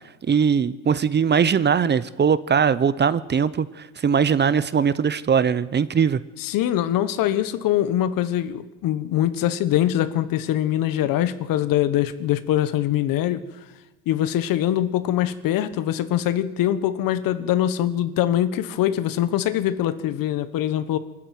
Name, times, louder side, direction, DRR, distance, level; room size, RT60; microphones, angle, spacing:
voice 1, 0.3-6.2, right 7 dB, 30° right, 0.8 m, -20 dB
voice 2, 6.4-13.4 14.1-21.0, left 12 dB, 65° left, 1.4 m, -23 dB
23.0 x 13.5 x 9.3 m
supercardioid pair, 90°, 37 cm